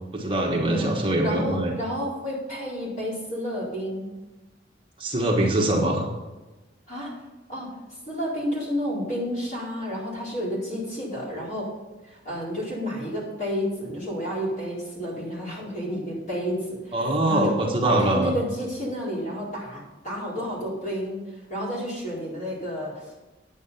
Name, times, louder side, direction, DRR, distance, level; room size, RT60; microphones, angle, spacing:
voice 1, 0.1-1.7 5.0-6.0 16.9-18.4, right 1 dB, 30° right, -1 dB, 1.3 m, -23 dB
voice 2, 1.2-4.1 6.9-7.1 7.5-7.7 8.1-11.7 12.0-17.5 17.8-21.2 21.5-23.2, equal, 40° left, -6 dB, 4.2 m, -30 dB
9.2 x 8.4 x 5.6 m, 1.1 s
head